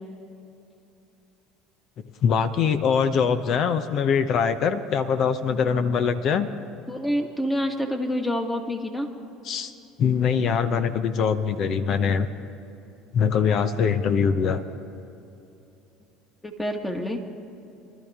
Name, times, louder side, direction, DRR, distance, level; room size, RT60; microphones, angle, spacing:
voice 1, 2.2-6.5 9.5-9.7 10.0-12.3 13.1-14.6, left 6 dB, 55° left, 11 dB, 0.8 m, -23 dB
voice 2, 6.9-9.1 16.4-17.2, equal, 10° left, 3 dB, 1.7 m, -27 dB
23.5 x 12.5 x 3.6 m, 2.8 s
hypercardioid pair, 80°, 0 cm